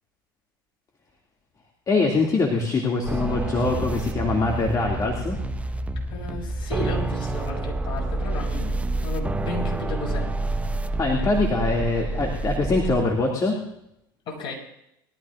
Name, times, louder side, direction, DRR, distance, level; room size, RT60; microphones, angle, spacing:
voice 1, 1.9-5.4 11.0-13.6, left 3 dB, 30° left, 0 dB, 2.5 m, -23 dB
sound 1, 3.0-13.0, right 2 dB, 10° right, 0.8 m, -28 dB
voice 2, 6.1-10.3 14.3-14.5, left 3 dB, 45° left, -3 dB, 6.5 m, -34 dB
22.0 x 13.5 x 2.6 m, 0.80 s
hypercardioid pair, 80°, 12 cm